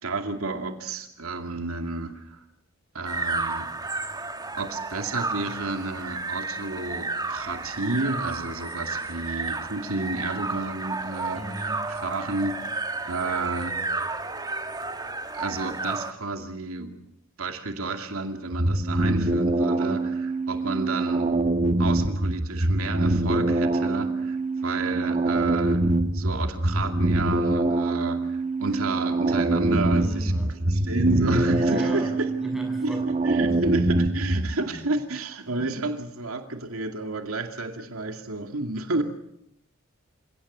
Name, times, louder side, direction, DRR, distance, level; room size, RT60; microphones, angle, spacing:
voice 1, 0.0-2.4 2.9-3.7 4.6-13.8 15.3-17.0 17.4-21.3 21.8-25.8 26.1-32.3 32.8-39.0, right 3 dB, 85° right, 5 dB, 2.4 m, -31 dB
sound 1, 3.1-16.1, right 3 dB, 20° right, 1.6 m, -32 dB
voice 2, 11.3-11.8 29.7-30.5 31.7-32.1 32.4-33.1 33.5-33.7 34.6-34.8 35.5-35.7, equal, ahead, 1 dB, 7.8 m, -36 dB
sound 2, 18.5-34.6, right 2 dB, 35° right, 1.3 m, -24 dB
28.0 x 17.0 x 8.2 m, 0.77 s
head